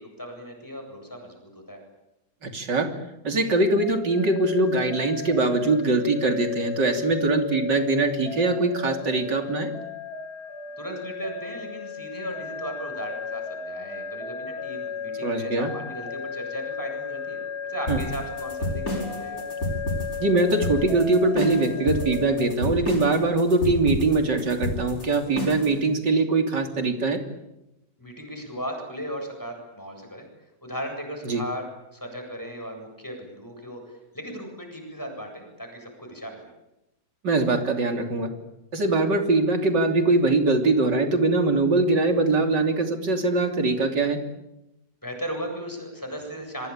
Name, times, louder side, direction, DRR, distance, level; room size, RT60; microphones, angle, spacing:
voice 1, 0.0-1.8 10.8-17.4 17.7-19.4 28.0-30.2 30.6-36.5 45.0-46.7, equal, 10° left, 3 dB, 8.0 m, -36 dB
voice 2, 2.4-2.9 3.2-9.7 15.2-15.7 17.9-18.0 20.2-27.2 31.3-31.4 37.2-38.3 38.7-44.2, right 2 dB, 80° right, 5 dB, 3.7 m, -22 dB
sound 1, 3.8-22.4, left 5 dB, 30° left, 7.1 m, -35 dB
sound 2, 17.9-25.7, left 1 dB, 55° left, 7.5 m, -30 dB
27.0 x 23.5 x 8.9 m, 0.92 s
omnidirectional pair, 1.8 m